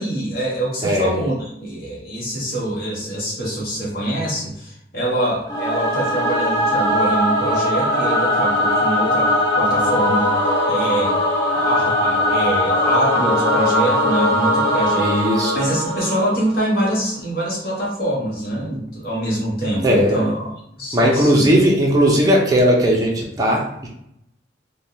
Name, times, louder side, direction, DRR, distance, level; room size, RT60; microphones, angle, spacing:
voice 1, 0.0-10.3 10.7-11.1 11.5-15.1 15.5-20.5 20.8-21.5, right 1 dB, 50° left, -5 dB, 1.1 m, -24 dB
voice 2, 0.8-1.1 15.0-15.6 19.8-20.2 20.9-23.9, equal, 20° right, -3 dB, 0.5 m, -17 dB
Singing / Musical instrument, 5.5-16.8, left 1 dB, 20° left, 0.7 m, -20 dB
3.4 x 2.2 x 2.7 m, 0.75 s
head